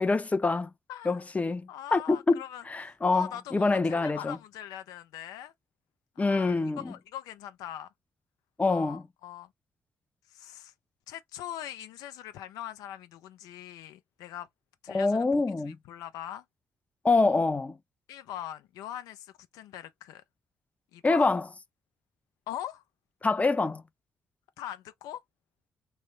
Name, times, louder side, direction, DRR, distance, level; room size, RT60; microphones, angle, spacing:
voice 1, 0.0-0.7 1.1-4.4 6.2-6.9 8.6-9.0 14.9-15.8 17.0-17.8 21.0-21.4 23.2-23.8, left 3 dB, 25° left, 0.5 m, -26 dB
voice 2, 0.9-1.3 1.7-2.6 3.1-5.5 6.2-7.9 8.6-9.5 10.3-10.7 11.1-14.5 14.8-16.4 18.1-20.2 20.9-21.3 22.5-22.8 24.6-25.2, left 11 dB, 85° left, 0.4 m, -42 dB
3.2 x 2.0 x 3.1 m
supercardioid pair, 55°, 6 cm